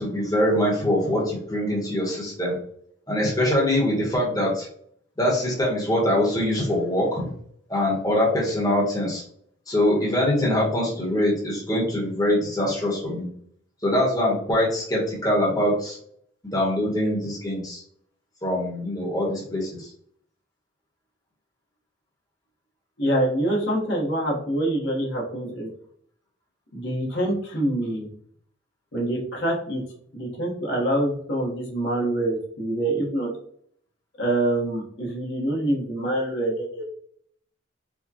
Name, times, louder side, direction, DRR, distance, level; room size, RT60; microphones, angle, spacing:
voice 1, 0.0-2.6 3.1-4.7 5.2-7.3 7.7-9.2 9.7-13.3 13.8-16.0 16.5-17.8 18.4-19.9, left 1 dB, 20° left, -4 dB, 1.0 m, -23 dB
voice 2, 23.0-25.7 26.7-28.1 28.9-29.8 30.1-33.3 34.2-36.8, right 1 dB, 65° left, -3 dB, 1.2 m, -25 dB
4.6 x 2.2 x 2.8 m, 0.63 s
head